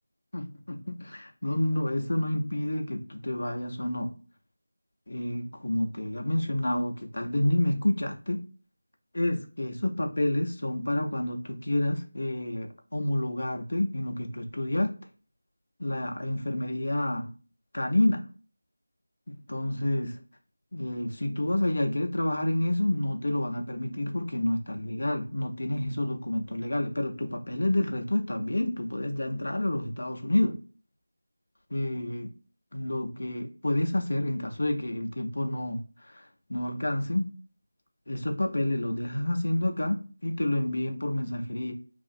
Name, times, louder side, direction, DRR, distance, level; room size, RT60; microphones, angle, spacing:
voice 1, 0.3-4.1 5.1-8.4 9.1-14.9 15.8-17.3 17.7-18.3 19.3-20.2 20.7-30.6 31.7-32.3 32.7-35.8 36.1-36.2 36.5-37.3 38.1-41.7, left 1 dB, 60° left, 0.6 m, -29 dB
2.8 x 2.4 x 2.4 m
figure-of-eight pair, 165°, 0 cm